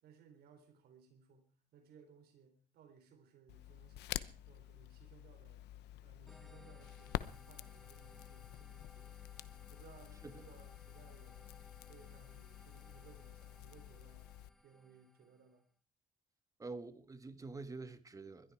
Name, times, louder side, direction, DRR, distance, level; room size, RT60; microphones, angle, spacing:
voice 1, 0.0-5.6 6.0-9.2 9.7-14.3 14.6-15.6, right 6 dB, 70° right, 3.5 m, -63 dB
Crackle, 3.5-14.5, left 15 dB, 80° left, 0.9 m, -48 dB
sound 1, 6.3-15.6, left 1 dB, ahead, 1.5 m, -63 dB
voice 2, 16.6-18.5, right 3 dB, 20° right, 1.6 m, -47 dB
21.5 x 13.0 x 4.8 m
cardioid pair, 110°, 17 cm